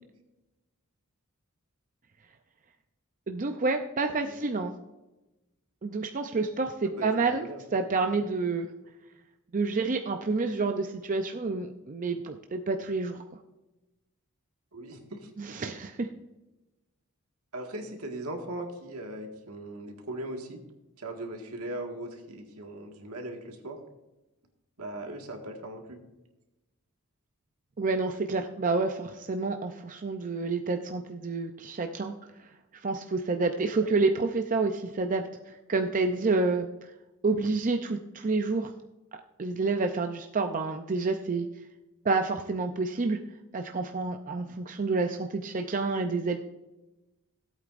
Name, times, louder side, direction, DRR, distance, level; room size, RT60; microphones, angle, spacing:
voice 1, 3.3-4.7 5.8-7.5 7.7-8.7 9.5-13.2 15.4-16.1 27.8-32.1 32.8-35.2 35.7-36.7 37.2-38.7 39.4-41.5 42.0-43.2 43.5-46.4, right 3 dB, 35° right, 5 dB, 0.5 m, -28 dB
voice 2, 6.8-7.6 14.7-15.3 17.5-20.6 21.0-23.8 24.8-26.0 33.7-33.9, right 1 dB, 75° right, 3 dB, 1.8 m, -39 dB
16.5 x 8.5 x 2.5 m, 1.0 s
head